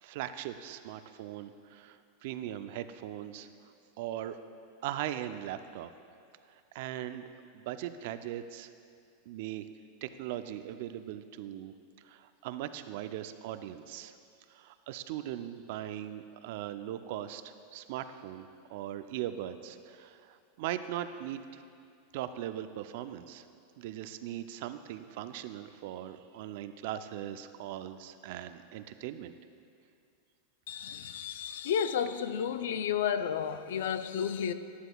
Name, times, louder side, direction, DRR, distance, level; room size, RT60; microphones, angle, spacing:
voice 1, 0.0-3.5 4.0-4.4 4.8-5.9 6.7-7.2 7.5-8.7 9.3-9.6 10.0-11.7 12.0-14.1 14.5-21.4 22.1-23.4 23.8-29.3, right 12 dB, 65° right, 0.4 m, -39 dB
voice 2, 30.7-34.5, left 8 dB, 80° left, 0.4 m, -32 dB
11.0 x 11.0 x 2.3 m
hypercardioid pair, 115°, 0 cm